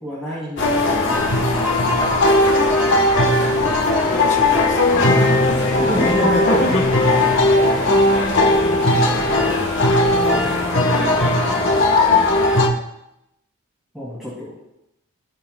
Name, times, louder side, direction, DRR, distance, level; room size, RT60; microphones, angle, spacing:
voice 1, 0.0-1.3 5.7-6.6 8.4-9.6 10.1-11.6 12.0-12.1 13.9-14.6, equal, ahead, -10 dB, 2.7 m, -28 dB
sound 1, 0.6-12.7, left 2 dB, 55° left, 1.3 m, -17 dB
sound 2, 1.1-10.5, right 1 dB, 40° right, 2.6 m, -34 dB
voice 2, 3.4-5.6 6.4-6.8, left 1 dB, 35° left, 0 dB, 1.3 m, -28 dB
17.0 x 6.7 x 2.2 m, 0.87 s
head